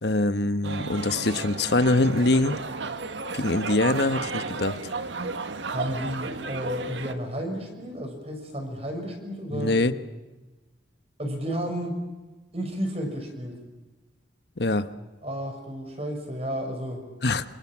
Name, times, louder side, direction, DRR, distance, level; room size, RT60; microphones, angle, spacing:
voice 1, 0.0-2.6 3.3-4.9 9.5-9.9 14.6-14.9 17.2-17.4, left 2 dB, 60° left, 11 dB, 1.3 m, -24 dB
sound 1, 0.6-7.1, right 4 dB, 80° right, 1.6 m, -33 dB
voice 2, 5.6-9.8 11.2-12.0 12.5-13.6 15.2-17.1, equal, 35° right, 4 dB, 6.2 m, -32 dB
28.0 x 27.0 x 7.5 m, 1.2 s
head